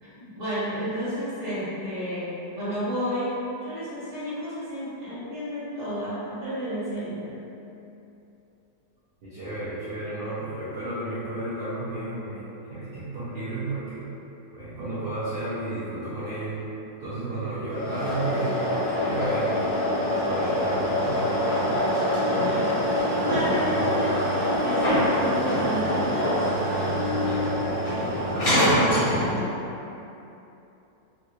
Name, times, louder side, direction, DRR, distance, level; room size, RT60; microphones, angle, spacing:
voice 1, 0.0-2.3 2.6-3.3 3.6-7.3 22.3-22.8 23.2-26.5 28.3-29.6, equal, 30° right, -17 dB, 1.0 m, -31 dB
voice 2, 9.2-12.4 12.7-14.1 14.5-16.6 17.0-18.6 19.0-19.6 20.1-21.3 28.3-29.0, right 2 dB, 85° right, -12 dB, 0.5 m, -32 dB
sound 1, 17.7-29.4, equal, 40° left, 0.9 m, -24 dB
3.3 x 2.5 x 3.0 m, 2.9 s
omnidirectional pair, 2.0 m